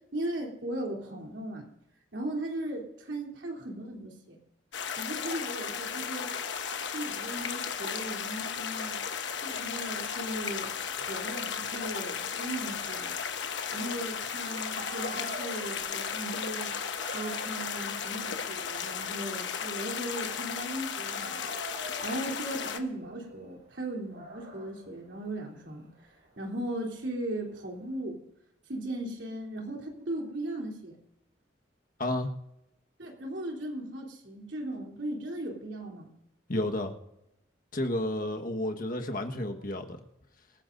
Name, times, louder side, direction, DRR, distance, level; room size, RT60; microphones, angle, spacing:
voice 1, 0.1-1.7 2.1-4.4 5.0-6.3 6.9-9.0 9.4-13.2 13.4-16.7 17.1-21.5 22.0-25.9 26.4-28.2 28.7-31.0 33.0-36.1, right 1 dB, 65° right, 0 dB, 3.4 m, -37 dB
sound 1, 4.7-22.8, left 7 dB, 65° left, 1.1 m, -35 dB
Dog, 14.4-14.5 14.7-20.8 21.1-27.9, right 1 dB, 50° right, 4.7 m, -48 dB
voice 2, 32.0-32.3 36.5-36.9 37.7-40.0, left 1 dB, 45° left, 4 dB, 1.5 m, -31 dB
25.5 x 14.5 x 2.7 m, 0.86 s
head